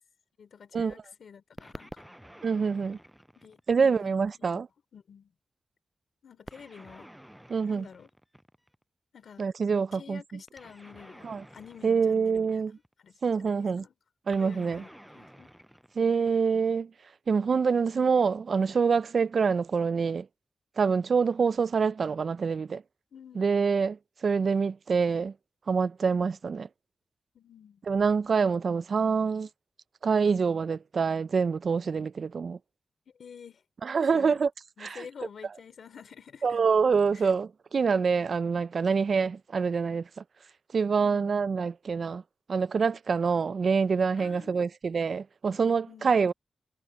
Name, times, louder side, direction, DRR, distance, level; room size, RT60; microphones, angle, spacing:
voice 1, 0.4-2.1 3.4-4.6 4.9-5.3 6.2-7.1 7.7-8.1 9.1-9.5 9.9-12.7 13.0-13.9 14.4-15.5 23.1-23.5 27.3-27.8 33.2-33.6 34.1-34.4 34.8-36.6 37.1-37.3 41.0-41.3 44.2-44.7 45.8-46.1, left 7 dB, 80° left, 2.9 m, -49 dB
sound 1, 1.6-4.2 6.5-8.8 10.5-12.9 14.3-16.8, equal, 5° right, 6.9 m, -51 dB
voice 2, 2.4-3.0 3.7-4.7 7.5-7.8 9.4-10.2 11.2-11.4 11.8-12.7 13.2-13.8 14.3-14.8 16.0-16.9 17.3-20.3 20.8-22.8 23.4-25.3 25.7-26.7 27.9-29.5 30.0-32.6 33.8-34.5 34.8-35.0 36.4-40.1 40.7-42.2 42.5-46.3, right 5 dB, 60° right, 0.4 m, -26 dB
wide cardioid pair, 130°, 0 cm